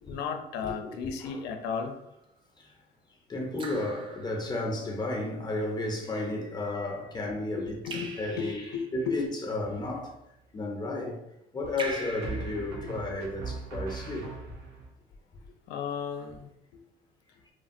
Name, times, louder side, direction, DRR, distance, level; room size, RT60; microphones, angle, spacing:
voice 1, 0.0-2.0 7.6-9.2 12.8-12.9 15.7-16.5, left 6 dB, 85° left, 0.4 m, -34 dB
voice 2, 0.6-1.4 2.6-2.7 3.3-7.8 8.2-10.1 10.5-11.2 11.5-14.3, left 2 dB, 25° left, 0.5 m, -33 dB
Raindrop / Drip, 1.8-2.2 3.6-4.9 7.9-9.0 11.8-13.5, right 2 dB, 30° right, 0.4 m, -42 dB
sound 1, 9.6-10.1 12.2-14.9, right 4 dB, 85° right, 0.7 m, -40 dB
3.0 x 2.0 x 2.5 m
cardioid pair, 110°, 17 cm